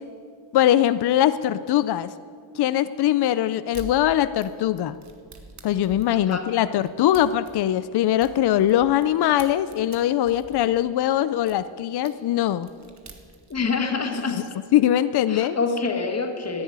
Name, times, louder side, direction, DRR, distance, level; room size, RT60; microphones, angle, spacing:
voice 1, 0.5-2.1 2.6-5.0 5.6-12.7 14.3-14.4 14.7-15.6, left 12 dB, 65° left, 14 dB, 0.5 m, -21 dB
sound 1, 3.7-3.9 4.4-9.1 9.4-11.6 12.0-12.1 12.5-13.7, right 4 dB, 40° right, 1.5 m, -45 dB
voice 2, 13.5-14.4 15.3-16.6, left 4 dB, 35° left, 5 dB, 1.6 m, -26 dB
14.0 x 10.5 x 9.5 m, 2.1 s
wide cardioid pair, 175°, 43 cm